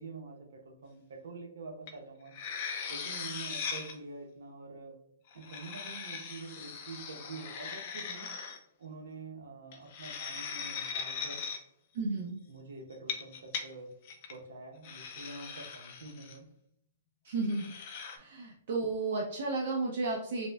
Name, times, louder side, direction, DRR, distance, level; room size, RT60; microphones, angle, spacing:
voice 1, 0.0-2.3 2.9-5.0 5.3-8.3 8.8-11.5 12.5-13.9 14.3-16.5, right 3 dB, 85° right, 2 dB, 0.8 m, -46 dB
sound 1, 1.9-2.0 2.3-4.0 5.3-8.6 9.7-11.6 12.9-13.6 14.1-14.3 14.8-16.4 17.4-18.2, left 6 dB, 35° left, 0.4 m, -39 dB
voice 2, 11.9-12.4 17.2-17.7 18.2-20.5, right 3 dB, 50° right, -2 dB, 0.5 m, -33 dB
5.1 x 2.1 x 2.3 m, 0.72 s
hypercardioid pair, 175°, 0 cm